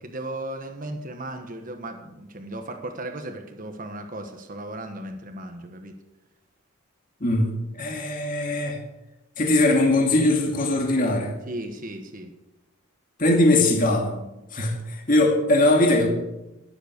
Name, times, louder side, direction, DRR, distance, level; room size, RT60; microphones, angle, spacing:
voice 1, 0.0-5.9 11.5-12.3, right 1 dB, 40° right, 5 dB, 1.4 m, -36 dB
voice 2, 7.8-8.8 9.4-11.3 13.2-14.1 14.5-16.1, left 2 dB, 40° left, 0 dB, 2.3 m, -20 dB
20.0 x 8.0 x 6.8 m, 0.97 s
head